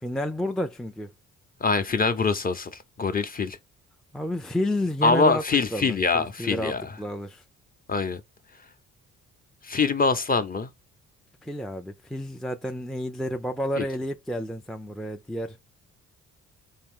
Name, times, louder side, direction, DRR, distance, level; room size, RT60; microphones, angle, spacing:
voice 1, 0.0-1.1 4.1-5.4 5.7-7.4 11.4-15.6, left 1 dB, ahead, 0.4 m, -30 dB
voice 2, 1.6-2.7 3.0-3.6 5.0-6.8 7.9-8.2 9.6-10.7 13.8-13.9, left 4 dB, 30° left, 0.8 m, -24 dB
4.2 x 2.7 x 3.7 m
cardioid pair, 90°, 30 cm